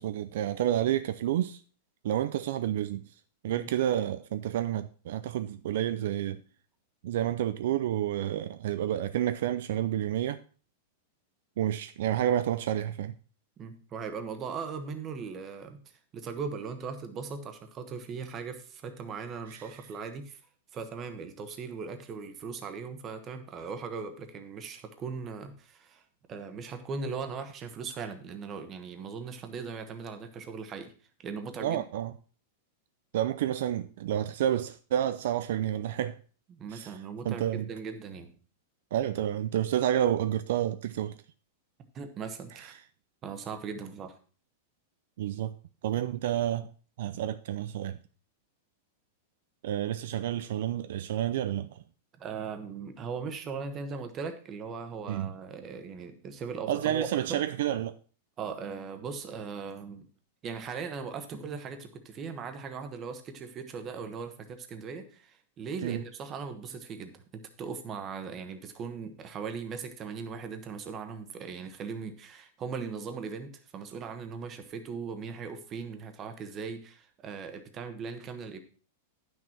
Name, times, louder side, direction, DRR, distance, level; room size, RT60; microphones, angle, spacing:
voice 1, 0.0-1.6 2.0-3.0 3.4-6.4 7.0-10.4 11.6-13.1 19.5-19.7 31.6-32.1 33.1-36.2 36.7-37.0 37.2-37.7 38.9-41.1 45.2-45.5 45.8-46.7 47.0-48.0 49.6-51.8 55.1-55.3 56.7-58.0 65.8-66.0, right 11 dB, 65° right, 0.4 m, -29 dB
voice 2, 13.6-15.8 16.1-20.4 20.7-26.0 26.3-30.9 31.2-31.8 36.5-38.3 41.9-42.7 43.2-44.2 52.2-57.4 58.4-60.1 60.4-67.2 67.6-78.6, right 5 dB, 20° right, 1.1 m, -39 dB
10.0 x 6.3 x 4.5 m
supercardioid pair, 165°, 0 cm